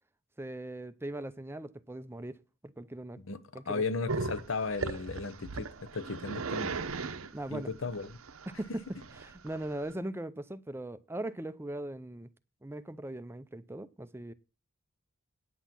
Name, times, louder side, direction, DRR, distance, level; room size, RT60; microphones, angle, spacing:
voice 1, 0.4-2.4 2.6-3.2 3.5-3.8 7.3-7.7 8.5-8.8 9.1-12.3 12.6-14.3, right 1 dB, 10° right, 0.5 m, -39 dB
voice 2, 3.7-6.8 7.5-8.2, left 4 dB, 65° left, 0.8 m, -35 dB
Growling, 4.1-9.9, right 4 dB, 80° right, 0.8 m, -37 dB
9.3 x 8.1 x 5.8 m
head